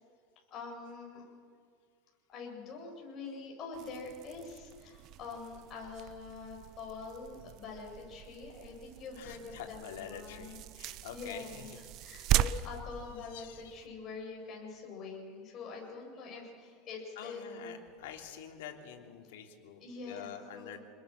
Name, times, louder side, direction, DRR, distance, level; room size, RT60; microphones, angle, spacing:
voice 1, 0.5-1.3 2.3-17.7 19.1-19.2 19.8-20.8, left 4 dB, 35° left, -1 dB, 7.9 m, -45 dB
sound 1, 3.7-13.9, right 13 dB, 50° right, 0.7 m, -38 dB
voice 2, 9.1-11.8 12.4-12.6 13.0-13.8 17.2-20.8, left 9 dB, 85° left, 3 dB, 3.3 m, -47 dB
28.5 x 21.0 x 6.7 m, 2.2 s
supercardioid pair, 140°, 0 cm